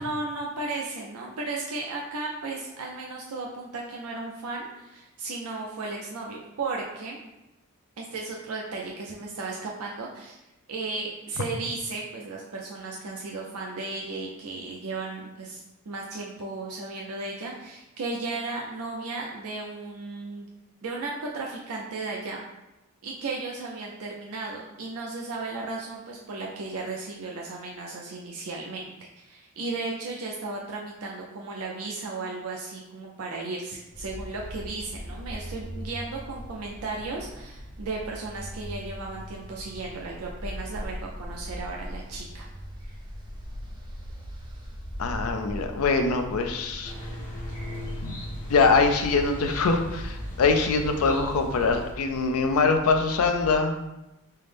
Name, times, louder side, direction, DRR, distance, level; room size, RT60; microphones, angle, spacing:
voice 1, 0.0-7.2 8.0-10.4 10.7-20.5 20.8-22.4 23.0-42.5 42.8-43.0, right 3 dB, 90° right, -1 dB, 0.5 m, -35 dB
sound 1, 33.9-53.6, equal, 20° right, 0.6 m, -40 dB
voice 2, 45.0-46.9 48.0-48.2 48.5-53.8, left 4 dB, 80° left, 5 dB, 0.4 m, -23 dB
sound 2, 46.8-51.9, equal, 35° left, 0.7 m, -38 dB
5.5 x 2.0 x 3.3 m, 0.97 s
head